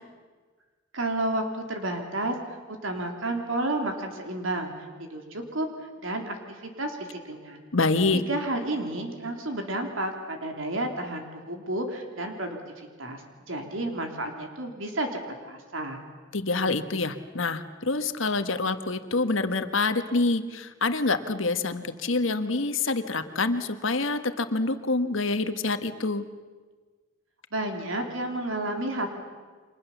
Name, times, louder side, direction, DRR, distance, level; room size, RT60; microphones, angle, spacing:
voice 1, 0.9-2.3 2.7-4.7 5.0-5.7 6.0-7.6 8.1-13.2 13.5-16.0 27.5-29.1, right 1 dB, 75° right, 3 dB, 3.3 m, -31 dB
voice 2, 7.7-8.2 16.3-26.2, left 3 dB, 70° left, 9 dB, 1.5 m, -26 dB
30.0 x 25.5 x 7.2 m, 1.4 s
head